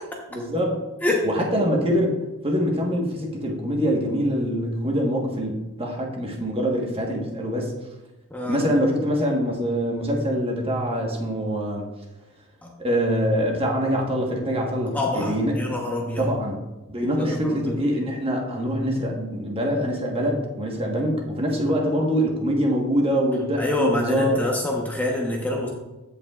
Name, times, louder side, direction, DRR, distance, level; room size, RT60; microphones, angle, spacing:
voice 1, 0.3-0.8 1.2-7.7 8.4-11.9 12.8-15.6 16.2-16.6 16.9-24.4, equal, 25° right, 0 dB, 1.3 m, -24 dB
voice 2, 8.3-8.6 12.6-12.7 14.9-16.3 17.2-17.8 23.6-25.7, left 1 dB, 10° left, -1 dB, 1.0 m, -26 dB
15.0 x 5.5 x 2.4 m, 1.1 s
head